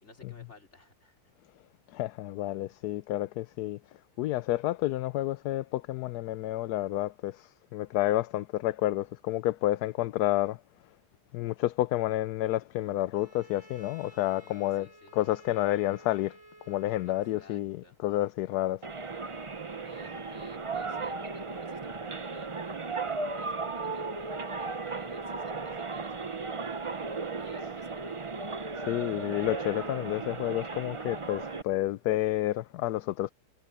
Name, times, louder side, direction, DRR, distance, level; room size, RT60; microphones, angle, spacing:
voice 1, 0.0-1.2 14.2-15.2 17.1-18.0 19.8-26.5 27.3-28.0, left 1 dB, 40° left, 4.7 m, -55 dB
voice 2, 1.9-3.8 4.2-10.6 11.3-16.4 16.7-18.8 28.8-33.3, left 15 dB, 75° left, 1.1 m, -30 dB
Bowed string instrument, 13.1-17.7, right 1 dB, 10° right, 4.1 m, -54 dB
sound 1, 18.8-31.6, right 4 dB, 30° right, 0.6 m, -36 dB
omnidirectional pair, 1.8 m